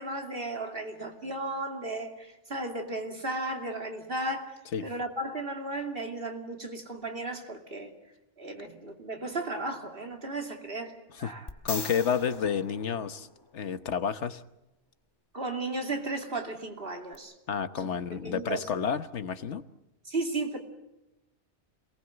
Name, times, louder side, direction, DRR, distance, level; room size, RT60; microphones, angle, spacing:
voice 1, 0.0-7.9 8.4-11.5 15.3-17.3 17.8-18.7 20.0-20.6, right 2 dB, 55° right, 2.9 m, -35 dB
sound 1, 11.5-13.7 17.1-17.2, left 3 dB, 20° left, 1.1 m, -40 dB
voice 2, 11.6-13.3 13.5-14.4 17.5-19.6, left 7 dB, 80° left, 1.4 m, -30 dB
27.0 x 19.0 x 8.0 m
omnidirectional pair, 1.2 m